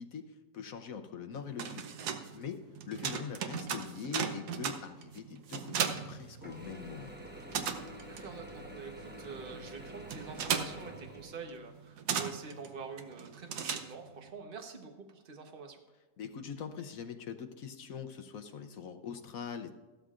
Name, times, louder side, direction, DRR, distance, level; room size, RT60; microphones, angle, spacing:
voice 1, 0.0-1.9 2.3-2.6 2.9-7.1 16.2-19.7, left 7 dB, 60° left, 6 dB, 1.0 m, -42 dB
sound 1, 1.3-6.9 7.2-14.3, right 7 dB, 70° right, 1.3 m, -37 dB
Mechanisms / Drill, 6.4-11.9, right 1 dB, 10° right, 0.7 m, -48 dB
voice 2, 8.1-15.8, right 5 dB, 35° right, 3 dB, 1.2 m, -46 dB
15.0 x 12.5 x 2.5 m, 1.2 s
omnidirectional pair, 1.9 m